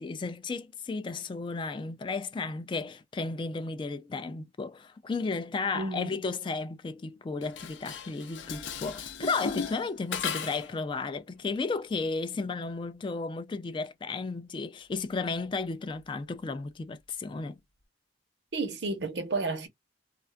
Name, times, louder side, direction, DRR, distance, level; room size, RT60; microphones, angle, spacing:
voice 1, 0.0-17.6, left 4 dB, 30° left, 0.3 m, -34 dB
voice 2, 5.7-6.2 18.5-19.7, right 3 dB, 75° right, 0.7 m, -31 dB
Dishes pots and pans, 7.4-10.8, left 6 dB, 90° left, 0.5 m, -36 dB
2.4 x 2.3 x 2.2 m
head